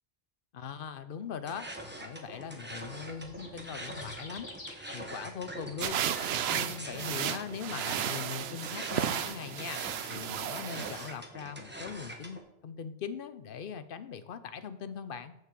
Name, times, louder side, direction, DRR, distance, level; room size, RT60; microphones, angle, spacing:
voice 1, 0.5-1.7 2.0-4.5 4.9-6.0 6.5-15.3, left 7 dB, 60° left, 12 dB, 0.8 m, -41 dB
sound 1, 1.5-12.4, right 1 dB, 10° right, 1.1 m, -44 dB
sound 2, 2.9-8.3, left 2 dB, 45° left, 1.6 m, -52 dB
sound 3, 5.8-11.1, right 10 dB, 75° right, 0.8 m, -34 dB
6.6 x 6.5 x 7.5 m, 0.84 s
omnidirectional pair, 1.1 m